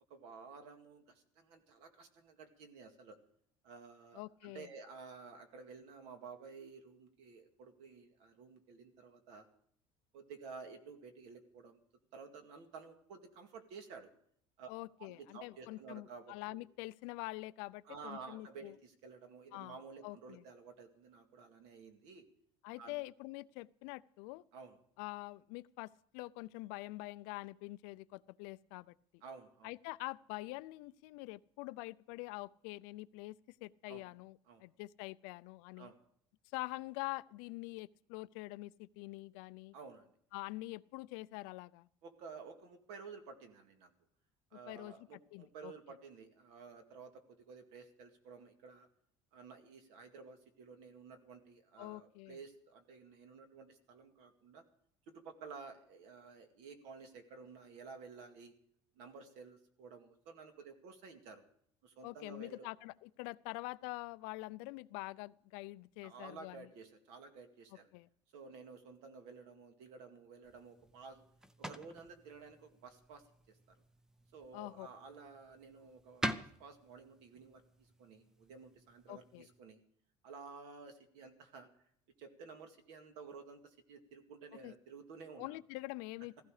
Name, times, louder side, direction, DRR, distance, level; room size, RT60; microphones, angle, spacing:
voice 1, 0.1-3.2 3.6-9.5 10.1-11.8 12.1-14.1 14.6-14.7 15.0-16.6 17.8-22.3 22.8-23.0 24.5-24.8 29.2-29.7 33.9-34.1 34.5-34.7 35.8-36.0 39.7-40.1 42.0-43.9 44.5-48.9 49.3-54.6 55.1-58.5 59.0-61.4 61.8-62.7 66.0-67.9 68.3-71.2 71.6-73.6 74.3-79.8 80.2-81.7 82.2-85.6, right 5 dB, 65° right, 6 dB, 2.2 m, -53 dB
voice 2, 4.1-4.7 14.7-18.7 19.5-19.8 20.0-20.4 22.6-24.4 25.0-28.9 29.6-33.4 33.6-35.9 36.5-39.7 40.3-41.9 44.7-44.9 45.3-45.7 51.8-52.4 62.0-66.7 67.9-68.1 74.5-74.9 79.1-79.5 84.6-84.7 85.4-86.5, left 21 dB, 90° left, 17 dB, 0.5 m, -45 dB
sound 1, 70.4-79.6, right 1 dB, 5° right, 0.5 m, -47 dB
15.5 x 15.0 x 4.9 m, 0.66 s
cardioid pair, 175°, 12 cm